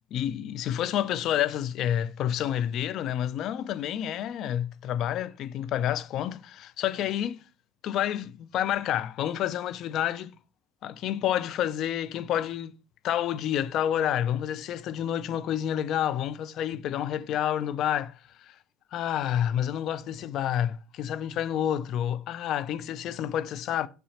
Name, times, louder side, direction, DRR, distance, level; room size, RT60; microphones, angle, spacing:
voice 1, 0.1-7.4 7.8-10.3 10.8-12.7 13.0-18.6 18.9-23.9, left 10 dB, 55° left, 0.5 m, -29 dB
6.1 x 5.7 x 2.8 m
hypercardioid pair, 75°, 0 cm